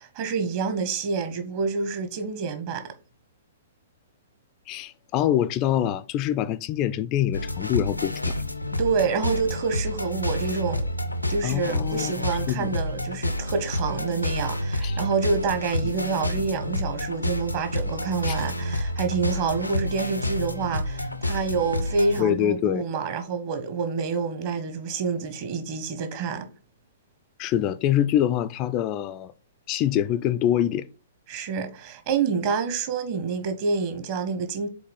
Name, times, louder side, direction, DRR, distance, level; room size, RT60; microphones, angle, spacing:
voice 1, 0.1-2.9 8.7-10.9 11.3-26.5 31.3-34.7, right 5 dB, 40° right, 1.2 m, -27 dB
voice 2, 4.7-8.3 11.4-12.7 14.8-15.0 18.3-18.4 22.2-22.9 27.4-29.3 29.7-30.9, left 11 dB, 30° left, 0.4 m, -25 dB
sound 1, 7.3-22.2, left 1 dB, 90° left, 0.6 m, -29 dB
4.8 x 4.1 x 5.5 m
figure-of-eight pair, 110°, 0 cm